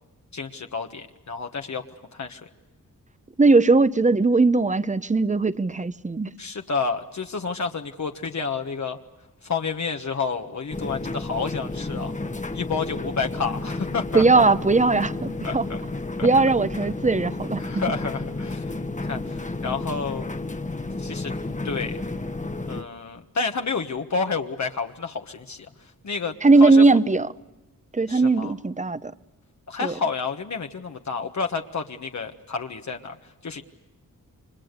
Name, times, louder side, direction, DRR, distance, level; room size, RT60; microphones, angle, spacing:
voice 1, 0.3-1.8 2.1-2.5 6.4-9.0 9.4-12.2 12.5-14.4 15.4-15.8 16.2-16.3 17.6-18.7 19.0-20.3 21.0-21.3 21.6-22.0 22.7-26.3 26.6-27.0 28.1-28.5 29.7-33.6, left 5 dB, 55° left, 1.4 m, -30 dB
voice 2, 3.4-6.3 14.1-15.6 16.2-17.8 26.4-27.3 27.9-29.1 29.8-29.9, right 3 dB, 20° right, 0.9 m, -19 dB
sound 1, 10.7-22.8, left 2 dB, 20° left, 1.3 m, -31 dB
29.5 x 25.0 x 6.8 m
cardioid pair, 65°, 34 cm